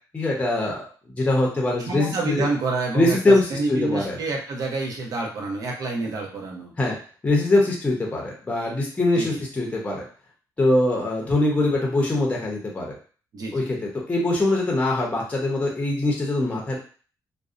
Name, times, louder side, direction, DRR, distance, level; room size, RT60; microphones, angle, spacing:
voice 1, 0.1-0.8 1.1-2.4 2.9-4.2 6.8-7.0 7.2-10.0 10.6-13.0 13.5-16.8, left 2 dB, 20° left, -2 dB, 0.6 m, -22 dB
voice 2, 1.9-6.7 9.2-9.4 13.3-13.7, right 3 dB, 55° right, 0 dB, 0.7 m, -28 dB
2.6 x 2.0 x 2.4 m, 0.40 s
cardioid pair, 150°, 7 cm